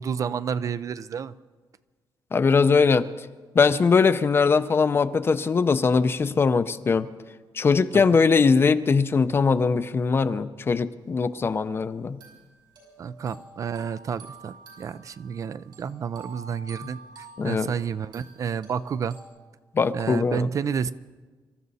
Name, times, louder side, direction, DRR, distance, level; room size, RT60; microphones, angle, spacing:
voice 1, 0.0-1.3 7.9-8.1 13.0-19.2 19.9-20.9, right 7 dB, 45° right, 15 dB, 0.4 m, -30 dB
voice 2, 2.3-3.1 3.5-7.1 7.5-12.2 17.4-17.7 19.7-20.5, left 5 dB, 30° left, 13 dB, 0.5 m, -21 dB
sound 1, 11.2-11.3 12.2-19.3, right 4 dB, 75° right, 6.2 m, -48 dB
25.5 x 13.5 x 4.1 m, 1.4 s
wide cardioid pair, 160°, 8 cm